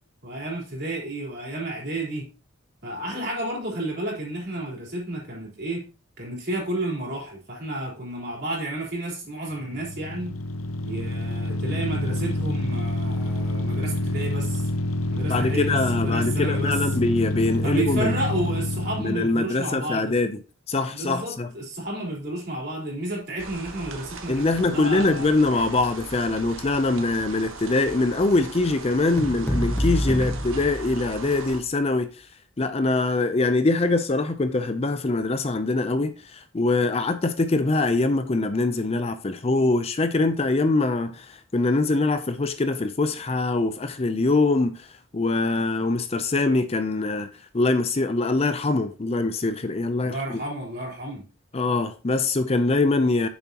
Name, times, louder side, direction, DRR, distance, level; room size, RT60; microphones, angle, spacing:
voice 1, 0.2-2.3 2.8-5.8 6.2-10.3 10.8-14.7 15.1-16.8 17.6-20.1 20.9-25.3 27.0-27.1 50.0-51.2, right 1 dB, 50° right, 4.0 m, -31 dB
sound 1, 9.6-19.4, left 1 dB, 85° left, 0.9 m, -27 dB
voice 2, 15.3-18.1 19.0-20.4 20.7-21.5 24.3-32.3 32.6-47.3 47.5-50.4 51.5-53.3, left 2 dB, 30° left, 0.5 m, -23 dB
sound 2, 23.4-31.6, right 3 dB, 75° right, 1.5 m, -39 dB
sound 3, 29.2-31.5, equal, 10° left, 1.0 m, -27 dB
9.7 x 7.2 x 2.9 m
head